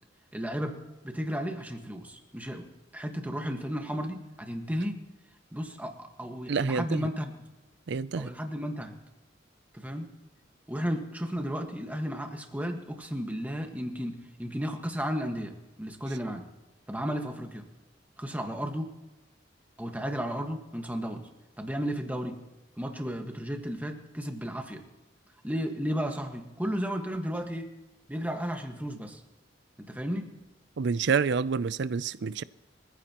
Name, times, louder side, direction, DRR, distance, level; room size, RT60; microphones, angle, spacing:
voice 1, 0.3-2.7 2.9-5.0 5.5-7.3 8.2-8.9 9.7-10.1 10.7-16.5 16.9-17.7 18.2-18.9 19.8-21.3 21.6-22.4 22.8-24.8 25.4-27.7 28.1-29.2 29.8-30.3, equal, 10° right, 1.6 m, -34 dB
voice 2, 6.5-7.1 7.9-8.3 30.8-32.4, right 5 dB, 65° right, 0.5 m, -28 dB
24.0 x 15.0 x 3.0 m
head